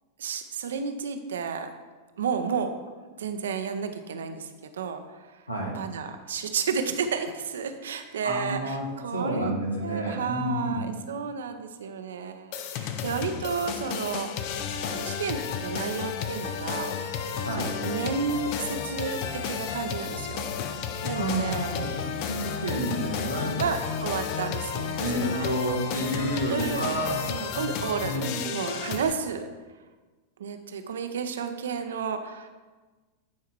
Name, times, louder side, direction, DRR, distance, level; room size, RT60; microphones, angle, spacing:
voice 1, 0.2-1.7 2.2-2.7 3.2-5.4 5.7-9.5 9.8-14.5 14.9-16.9 17.6-21.7 23.6-25.5 26.5-26.8 27.3-29.5 30.4-32.5, right 6 dB, 65° right, 7 dB, 0.7 m, -32 dB
voice 2, 8.2-10.9 17.4-17.7 21.1-23.6 25.0-27.2 28.0-28.4, right 1 dB, 85° left, -2 dB, 1.9 m, -30 dB
sound 1, 12.5-29.1, left 7 dB, 45° left, 0.6 m, -32 dB
10.5 x 4.7 x 4.5 m, 1.3 s
figure-of-eight pair, 90°, 0 cm